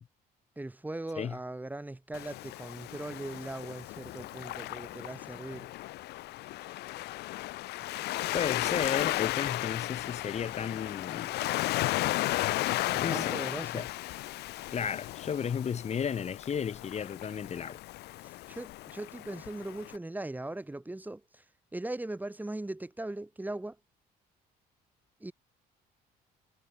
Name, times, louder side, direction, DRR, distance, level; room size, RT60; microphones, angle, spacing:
voice 1, 0.6-5.7 12.9-13.9 18.2-21.4 21.7-23.8 25.2-25.3, right 2 dB, 10° right, 5.0 m, -39 dB
Waves surf, 2.1-20.0, left 18 dB, 75° left, 0.7 m, -35 dB
voice 2, 8.3-11.4 13.0-13.4 13.7-13.8 14.7-17.8, left 7 dB, 40° left, 3.1 m, -33 dB
cardioid pair, 110°, 17 cm